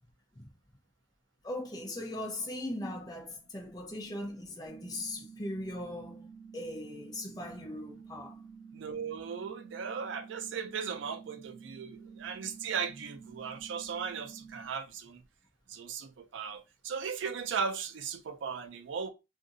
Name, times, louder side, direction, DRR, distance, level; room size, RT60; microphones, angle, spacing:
voice 1, 1.4-8.4, left 1 dB, 20° left, 0.7 m, -39 dB
sound 1, 4.7-14.7, right 6 dB, 25° right, 1.4 m, -50 dB
voice 2, 8.7-15.2 15.7-19.1, right 6 dB, 70° right, 0.4 m, -37 dB
2.8 x 2.5 x 2.6 m
head